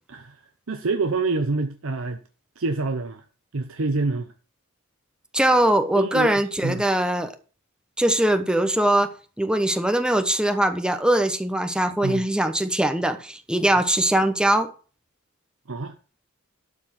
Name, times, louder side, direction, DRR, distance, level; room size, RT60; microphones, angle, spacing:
voice 1, 0.7-2.2 2.6-3.3 3.5-4.3 5.9-6.8 12.0-12.2 15.7-15.9, right 3 dB, 70° right, 0.8 m, -26 dB
voice 2, 5.3-7.3 8.0-9.1 9.4-14.7, right 1 dB, 5° right, 1.0 m, -21 dB
12.0 x 4.5 x 7.4 m
head